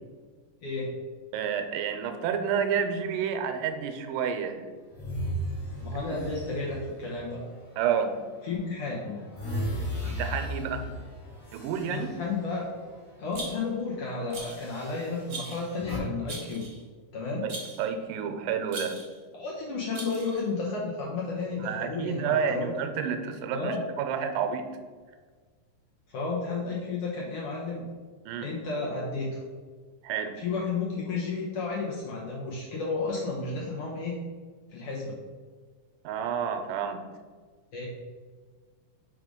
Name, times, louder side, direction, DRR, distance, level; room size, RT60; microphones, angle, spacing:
voice 1, 0.6-0.9 5.8-7.4 8.4-9.2 11.9-12.6 13.2-16.7 17.1-17.5 19.3-22.8 23.5-23.8 26.1-27.8 28.4-29.4 30.4-34.2 34.7-35.2 37.7-37.9, left 4 dB, 80° left, -4 dB, 1.3 m, -32 dB
voice 2, 1.3-4.7 5.9-6.2 7.8-8.2 10.0-10.9 11.5-12.2 17.4-19.0 21.6-24.7 28.3-28.5 30.0-30.4 36.0-37.0, right 7 dB, 85° right, 7 dB, 2.2 m, -30 dB
sound 1, 4.9-8.3 8.7-13.0 13.3-13.6 14.4-16.0, equal, 50° left, 1.9 m, -37 dB
Rattle, 13.3-13.8 14.3-14.7 15.3-15.7 16.3-16.8 17.5-17.9 18.7-19.2 19.9-20.5, right 2 dB, 50° right, 1.0 m, -40 dB
4.9 x 3.7 x 5.1 m, 1.5 s
omnidirectional pair, 3.8 m